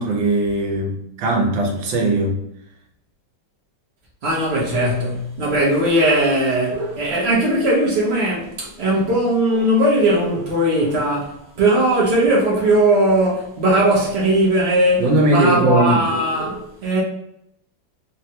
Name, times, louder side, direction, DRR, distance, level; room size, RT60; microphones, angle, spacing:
voice 1, 0.0-2.4 15.0-16.0, right 2 dB, 80° right, 1.4 m, -19 dB
voice 2, 4.2-17.0, right 1 dB, 60° right, 0.6 m, -18 dB
3.5 x 2.1 x 2.8 m
omnidirectional pair, 2.0 m